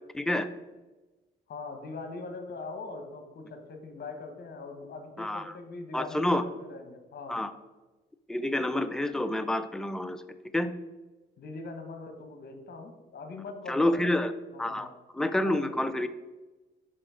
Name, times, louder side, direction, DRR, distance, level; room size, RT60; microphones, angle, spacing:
voice 1, 0.1-0.5 5.2-5.6 5.9-6.4 7.3-7.5 8.3-10.2 10.5-10.7 13.7-14.3 14.6-14.9 15.1-16.1, left 1 dB, 5° left, 10 dB, 0.4 m, -28 dB
voice 2, 1.5-7.4 11.4-14.1 14.5-14.9 15.4-15.8, left 3 dB, 55° left, 5 dB, 1.1 m, -42 dB
5.8 x 5.0 x 4.9 m, 1.2 s
cardioid pair, 90°, 20 cm